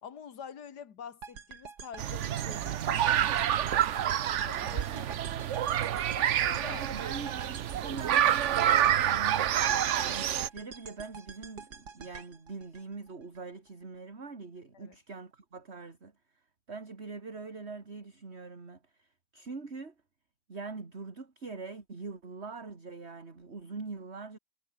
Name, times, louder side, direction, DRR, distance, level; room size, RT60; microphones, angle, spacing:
voice 1, 0.0-4.0 4.4-5.6 6.1-6.9 14.7-15.0, left 7 dB, 85° left, 2.1 m, -47 dB
sound 1, 1.2-13.4, right 6 dB, 80° right, 2.7 m, -47 dB
sound 2, 2.0-10.5, right 10 dB, 60° right, 0.9 m, -28 dB
voice 2, 6.7-16.1 16.7-19.9 20.5-24.4, right 4 dB, 40° right, 2.8 m, -43 dB
omnidirectional pair, 1.7 m